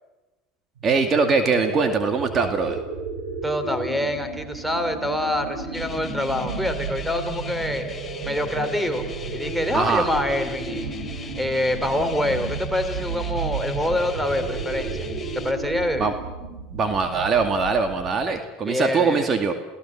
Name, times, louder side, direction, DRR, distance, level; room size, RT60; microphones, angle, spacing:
voice 1, 0.8-2.8 9.7-10.1 16.0-16.1 16.7-19.5, right 4 dB, 35° right, 6 dB, 2.4 m, -22 dB
sound 1, 0.8-18.3, right 5 dB, 85° right, 7.9 m, -33 dB
voice 2, 3.4-7.8 8.2-9.0 9.3-11.0 11.4-15.0 15.4-16.1 18.7-19.3, left 1 dB, ahead, 9 dB, 3.2 m, -26 dB
sound 2, 5.7-15.5, left 4 dB, 20° left, 3.4 m, -38 dB
29.5 x 17.0 x 7.5 m, 1.1 s
hypercardioid pair, 85°, 0 cm